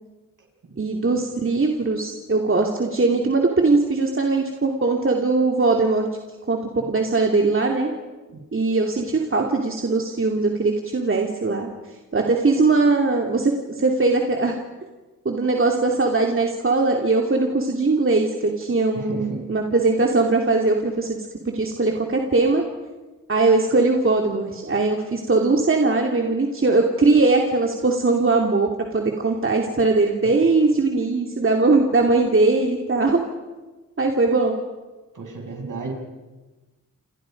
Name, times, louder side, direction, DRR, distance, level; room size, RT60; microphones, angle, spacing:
voice 1, 0.8-6.1 6.5-7.9 8.5-11.7 12.1-14.6 15.2-22.6 23.3-33.2 34.0-34.6, right 3 dB, 40° right, 2 dB, 2.6 m, -20 dB
voice 2, 18.9-19.5 35.1-35.9, right 3 dB, 65° right, 2 dB, 6.4 m, -33 dB
29.0 x 28.5 x 5.3 m, 1.2 s
wide cardioid pair, 85°, 34 cm